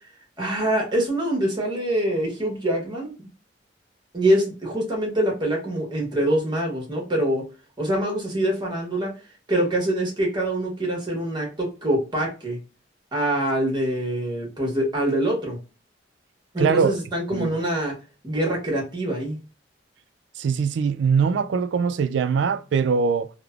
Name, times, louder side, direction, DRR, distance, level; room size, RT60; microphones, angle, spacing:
voice 1, 0.4-3.3 4.1-7.5 7.8-9.1 9.5-12.6 13.1-15.6 16.5-18.0 18.2-19.4, right 1 dB, 25° right, 1.1 m, -24 dB
voice 2, 16.6-17.0 17.3-17.5 20.4-23.3, right 6 dB, 70° right, 0.3 m, -22 dB
3.2 x 2.1 x 2.3 m
head